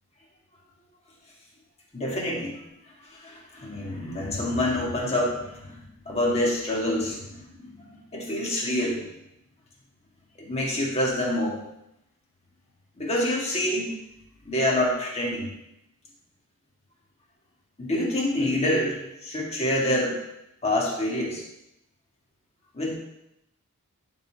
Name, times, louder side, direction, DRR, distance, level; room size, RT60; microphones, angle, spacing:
voice 1, 1.9-2.6 3.1-9.0 10.4-11.6 13.0-13.9 14.4-15.5 17.8-20.2 20.6-21.5 22.7-22.9, left 1 dB, 30° left, -3 dB, 1.9 m, -27 dB
11.0 x 4.0 x 4.6 m, 0.84 s
head